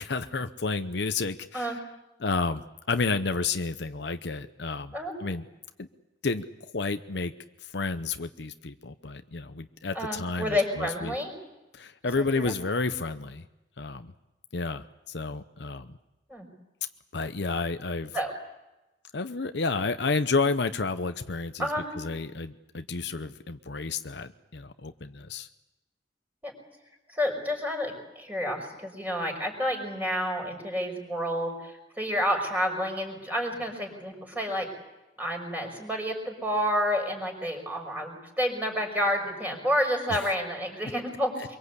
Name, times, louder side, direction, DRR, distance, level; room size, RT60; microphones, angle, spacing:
voice 1, 0.0-1.8 2.2-5.5 5.8-5.9 6.2-6.4 6.7-7.3 7.6-11.1 11.7-13.5 13.8-14.1 14.5-16.0 17.1-18.2 19.1-21.7 22.0-25.5 40.1-40.3 41.4-41.5, left 4 dB, 65° left, 9 dB, 0.8 m, -31 dB
voice 2, 9.9-11.3 12.2-12.5 16.3-16.5 18.1-18.3 21.6-21.9 26.4-26.5 27.1-34.7 35.2-41.6, equal, 10° right, 2 dB, 5.3 m, -29 dB
24.5 x 23.5 x 8.2 m, 1.0 s
head